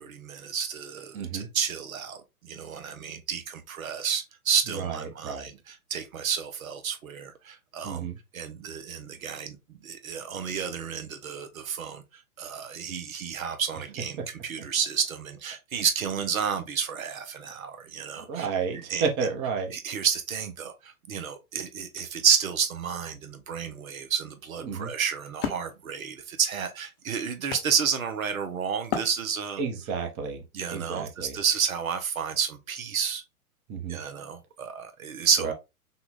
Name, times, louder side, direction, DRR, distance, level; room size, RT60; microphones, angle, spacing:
voice 1, 0.0-2.2 2.4-8.1 8.3-12.0 12.4-18.5 18.9-19.0 19.7-29.6 30.5-33.2 33.9-35.5, right 7 dB, 65° right, 1.0 m, -30 dB
voice 2, 1.1-1.5 4.7-5.5 7.8-8.2 18.3-19.8 24.6-24.9 29.6-30.4 30.7-31.4 33.7-34.0 35.4-35.5, right 5 dB, 25° right, 1.0 m, -31 dB
Wood, 23.7-28.4 28.9-29.8, left 7 dB, 40° left, 1.0 m, -37 dB
5.9 x 2.4 x 3.6 m
figure-of-eight pair, 115°, 45 cm